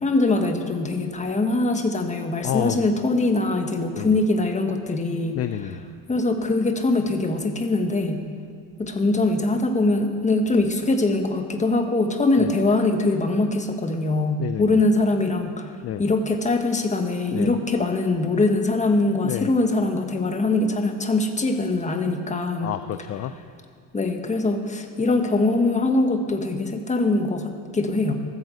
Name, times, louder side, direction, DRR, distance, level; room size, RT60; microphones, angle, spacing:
voice 1, 0.0-5.4 6.1-8.2 8.8-15.6 16.0-22.7 23.9-28.1, left 2 dB, 20° left, 5 dB, 1.4 m, -22 dB
voice 2, 2.4-2.9 4.0-4.2 5.3-5.8 12.4-12.5 14.4-14.8 15.8-16.0 17.3-17.5 19.2-19.5 22.6-23.3, left 12 dB, 40° left, 11 dB, 0.5 m, -29 dB
13.5 x 9.4 x 7.8 m, 2.3 s
cardioid pair, 115°, 36 cm